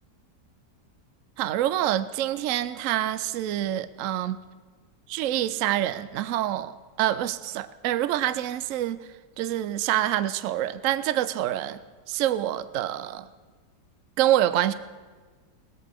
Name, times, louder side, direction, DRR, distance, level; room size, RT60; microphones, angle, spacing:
voice 1, 1.4-4.4 5.1-6.7 7.0-9.1 9.4-11.8 12.1-13.3 14.2-14.7, right 12 dB, 70° right, 14 dB, 0.8 m, -26 dB
20.5 x 8.2 x 4.5 m, 1.4 s
omnidirectional pair, 1.8 m